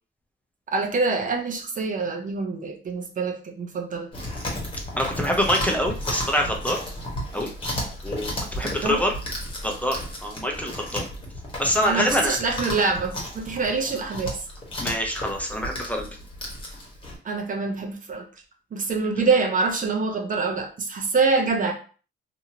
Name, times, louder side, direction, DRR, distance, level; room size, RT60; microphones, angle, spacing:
voice 1, 0.7-4.1 8.6-9.0 11.8-14.4 17.2-18.2 18.7-21.7, right 4 dB, 40° right, 3 dB, 0.6 m, -25 dB
Chewing mastication, 4.1-17.2, left 1 dB, 25° left, 1.2 m, -34 dB
voice 2, 5.0-6.8 7.3-7.5 8.0-9.1 9.6-11.0 11.6-12.4 14.8-16.1, equal, 5° left, 1 dB, 0.6 m, -25 dB
2.7 x 2.6 x 2.8 m, 0.38 s
cardioid pair, 90°, 20 cm